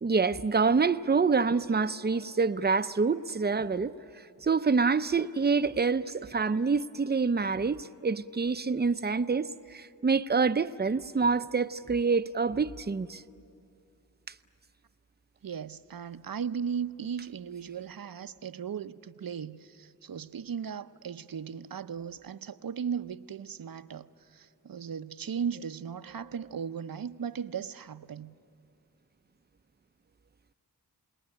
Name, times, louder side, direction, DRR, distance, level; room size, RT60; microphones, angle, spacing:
voice 1, 0.0-13.2 14.3-14.4, right 4 dB, 25° right, 0.7 m, -27 dB
voice 2, 15.4-28.3, right 7 dB, 55° right, 0.8 m, -37 dB
28.5 x 19.5 x 9.9 m
cardioid pair, 45°, 41 cm